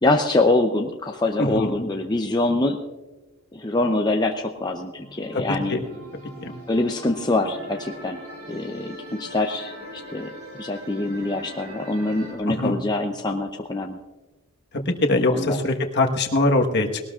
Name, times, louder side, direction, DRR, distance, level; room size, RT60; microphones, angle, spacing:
voice 1, 0.0-2.8 3.5-5.8 6.7-8.2 8.5-14.0 15.3-15.6, left 2 dB, 20° left, 2 dB, 0.6 m, -24 dB
voice 2, 1.4-1.7 5.3-5.4 5.7-5.8 6.4-6.6 12.5-12.8 14.7-17.0, left 2 dB, 50° left, 3 dB, 1.3 m, -22 dB
sound 1, 4.9-12.3, right 1 dB, 80° right, 5.2 m, -41 dB
20.5 x 18.5 x 2.4 m, 1.2 s
head